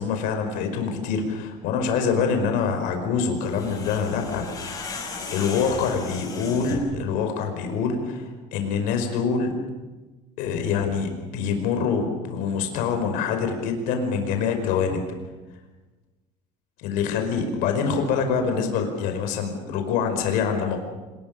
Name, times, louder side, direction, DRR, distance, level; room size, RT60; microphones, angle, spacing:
voice 1, 0.0-4.9 5.3-9.6 10.4-15.0 16.8-20.8, left 6 dB, 70° left, 5 dB, 5.2 m, -25 dB
sound 1, 3.4-7.0, left 4 dB, 25° left, 5.5 m, -35 dB
26.5 x 20.5 x 7.0 m, 1.2 s
cardioid pair, 145°, 15 cm